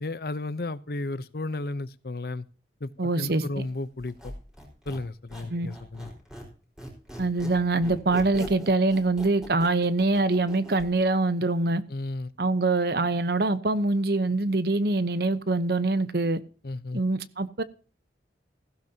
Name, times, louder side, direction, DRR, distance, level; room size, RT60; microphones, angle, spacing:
voice 1, 0.0-2.4 2.8-4.3 4.9-6.1 11.9-12.3 16.6-17.0, left 2 dB, 60° left, 0.7 m, -34 dB
voice 2, 3.0-3.6 5.5-5.7 7.2-11.8 12.4-16.4 16.9-17.6, right 2 dB, 60° right, 0.9 m, -24 dB
Squeak, 4.0-6.5 6.8-10.9, equal, 5° right, 4.7 m, -41 dB
15.5 x 13.0 x 2.8 m
head